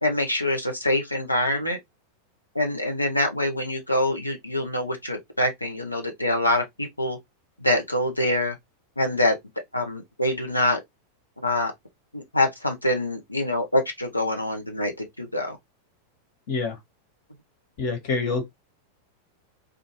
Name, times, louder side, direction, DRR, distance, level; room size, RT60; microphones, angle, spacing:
voice 1, 0.0-1.8 2.5-7.2 7.6-8.6 9.0-9.4 9.7-10.8 11.4-11.7 12.1-15.6, left 1 dB, 85° left, 0.9 m, -25 dB
voice 2, 16.5-16.8 17.8-18.5, left 4 dB, 45° left, 1.4 m, -26 dB
2.6 x 2.3 x 2.9 m
figure-of-eight pair, 90°, 0 cm